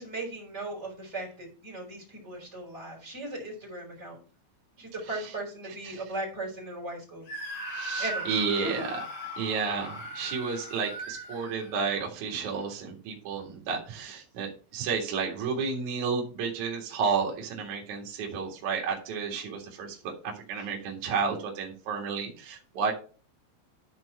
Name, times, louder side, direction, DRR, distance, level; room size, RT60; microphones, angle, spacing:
voice 1, 0.0-4.2 4.8-7.3 8.0-8.8 12.5-12.7, right 2 dB, 15° right, -1 dB, 3.1 m, -38 dB
Screaming, 7.3-12.1, right 1 dB, 85° left, 8.1 m, -38 dB
voice 2, 7.7-9.0 9.4-20.1 20.5-22.9, right 5 dB, 50° right, -1 dB, 2.5 m, -31 dB
12.5 x 4.6 x 4.3 m, 0.36 s
omnidirectional pair, 5.9 m